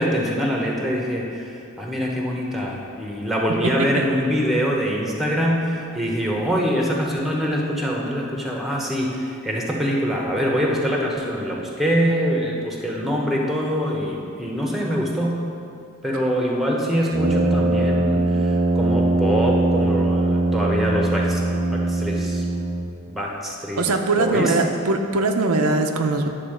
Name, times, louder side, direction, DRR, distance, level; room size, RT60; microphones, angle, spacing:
voice 1, 0.0-15.4 16.0-22.7 23.1-23.8 24.2-24.5, equal, ahead, -1 dB, 0.9 m, -24 dB
Brass instrument, 17.1-23.0, right 2 dB, 35° right, 0.5 m, -21 dB
voice 2, 23.8-26.3, right 3 dB, 85° right, 4 dB, 0.6 m, -21 dB
10.0 x 4.0 x 6.5 m, 2.5 s
head